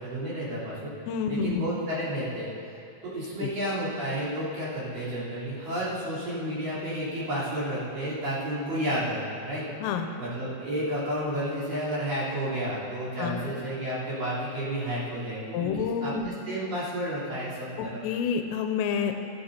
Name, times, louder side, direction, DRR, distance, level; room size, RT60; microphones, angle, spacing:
voice 1, 0.0-0.9 1.3-2.5 3.0-9.7 10.2-18.0, equal, 45° right, -10 dB, 4.7 m, -31 dB
voice 2, 1.1-1.6 3.4-3.5 9.8-10.1 13.2-13.4 15.5-16.3 17.8-19.1, left 6 dB, 85° left, 5 dB, 3.2 m, -28 dB
16.0 x 15.5 x 2.8 m, 2.8 s
omnidirectional pair, 5.9 m